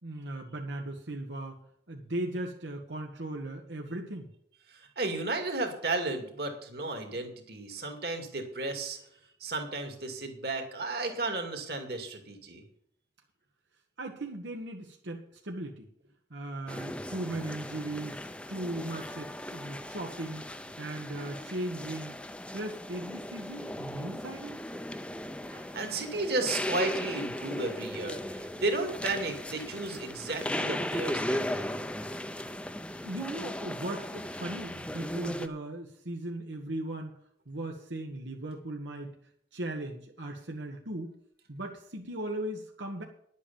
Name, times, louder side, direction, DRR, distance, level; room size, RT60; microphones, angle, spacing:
voice 1, 0.0-1.6 1.9-4.3 14.0-15.9 16.3-20.5 20.8-22.2 22.5-24.6 33.0-37.1 37.5-39.1 39.5-41.1 41.5-43.0, right 1 dB, 85° right, 1 dB, 1.5 m, -38 dB
voice 2, 4.7-9.1 9.4-12.6 25.5-31.7, right 2 dB, 60° right, 4 dB, 2.3 m, -34 dB
sound 1, 16.7-35.5, left 1 dB, 5° left, 0.6 m, -37 dB
10.5 x 8.3 x 7.0 m, 0.69 s
head